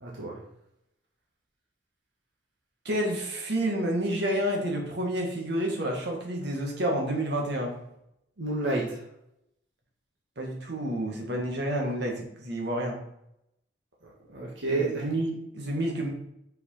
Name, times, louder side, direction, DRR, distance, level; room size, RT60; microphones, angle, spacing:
voice 1, 0.0-0.4 8.4-9.0 14.0-15.0, right 2 dB, 80° right, -3 dB, 1.7 m, -30 dB
voice 2, 2.9-7.8 10.4-13.0 14.7-16.1, right 1 dB, 60° right, 0 dB, 2.0 m, -29 dB
6.3 x 5.5 x 5.7 m, 0.79 s
head